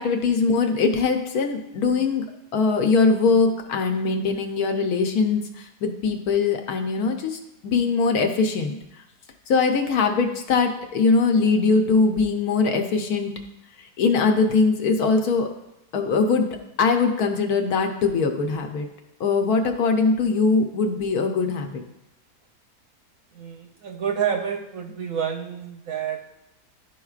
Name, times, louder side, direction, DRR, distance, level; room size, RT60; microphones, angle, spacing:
voice 1, 0.0-2.2 2.5-8.8 9.5-13.3 14.0-15.5 15.9-18.9 19.2-21.8, left 4 dB, 70° left, 4 dB, 1.2 m, -21 dB
voice 2, 23.3-26.2, right 8 dB, 65° right, 4 dB, 0.9 m, -28 dB
12.5 x 4.7 x 2.4 m, 0.86 s
omnidirectional pair, 1.8 m